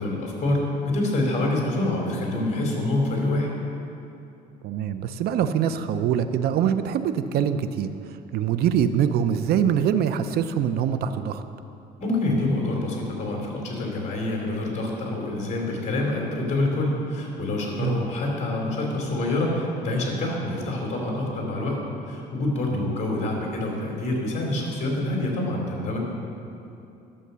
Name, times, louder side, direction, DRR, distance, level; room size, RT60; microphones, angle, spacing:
voice 1, 0.0-3.5 12.0-21.8 22.1-26.0, left 2 dB, 45° left, -1 dB, 3.1 m, -26 dB
voice 2, 4.6-7.9 8.3-11.4 17.8-18.0 22.7-22.9, right 8 dB, 70° right, 10 dB, 0.6 m, -24 dB
11.0 x 7.3 x 6.8 m, 2.8 s
cardioid pair, 110°, 17 cm